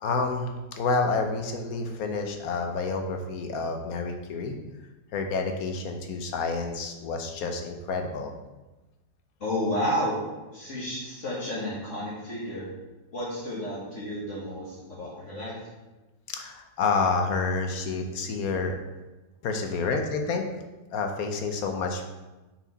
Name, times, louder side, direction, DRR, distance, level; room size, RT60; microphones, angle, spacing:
voice 1, 0.0-4.6 5.1-8.3 16.3-18.8 19.4-20.4 20.9-22.1, left 4 dB, 70° left, 4 dB, 1.1 m, -29 dB
voice 2, 9.4-10.2 10.5-12.6 13.1-15.6, equal, 50° left, -7 dB, 1.6 m, -31 dB
5.9 x 4.5 x 4.0 m, 1.1 s
omnidirectional pair, 1.7 m